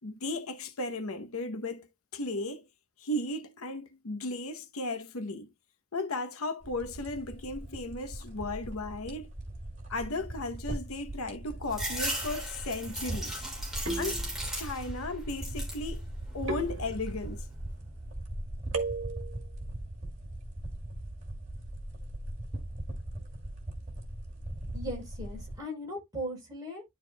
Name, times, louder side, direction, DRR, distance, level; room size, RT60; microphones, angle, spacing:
voice 1, 0.0-1.9 2.1-2.7 3.0-5.5 5.9-9.3 9.9-13.4 14.0-14.2 14.5-16.1 16.3-17.5, left 2 dB, 90° left, 0.9 m, -35 dB
sound 1, 6.6-25.6, right 1 dB, 35° right, 2.6 m, -40 dB
sound 2, 11.5-12.0 13.9-14.8 16.5-17.4 18.7-19.5, right 3 dB, 70° right, 1.8 m, -36 dB
sound 3, 11.7-15.0 15.3-15.9 16.4-17.1, right 1 dB, ahead, 3.1 m, -37 dB
voice 2, 24.7-26.8, equal, 20° right, 4.5 m, -38 dB
11.5 x 4.4 x 2.2 m
head